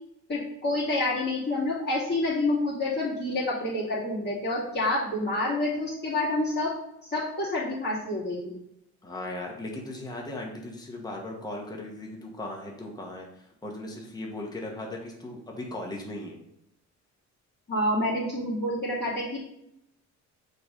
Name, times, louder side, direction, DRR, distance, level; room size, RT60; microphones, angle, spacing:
voice 1, 0.3-6.7 7.0-8.6 17.7-19.4, left 2 dB, 35° left, -8 dB, 2.5 m, -28 dB
voice 2, 9.0-16.4, left 1 dB, 15° left, -1 dB, 1.3 m, -37 dB
5.8 x 3.3 x 5.2 m, 0.79 s
cardioid pair, 90°, 30 cm